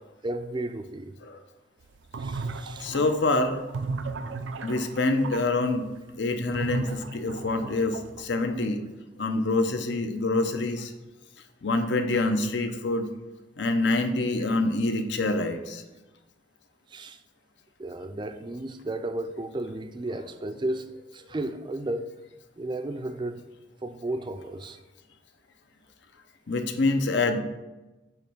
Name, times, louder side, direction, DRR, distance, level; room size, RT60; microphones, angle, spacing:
voice 1, 0.2-1.1 2.2-2.9 16.9-17.2 17.8-20.8 21.1-22.1 22.6-23.4 23.8-24.8, right 2 dB, 25° right, 0.4 m, -33 dB
sound 1, 1.9-5.4 6.5-8.2, right 3 dB, 80° right, 0.5 m, -35 dB
voice 2, 2.8-3.8 4.6-5.9 6.2-8.8 9.2-10.9 11.6-13.1 13.6-15.8 26.5-27.4, left 2 dB, 70° left, 0.7 m, -26 dB
8.7 x 3.1 x 5.9 m
head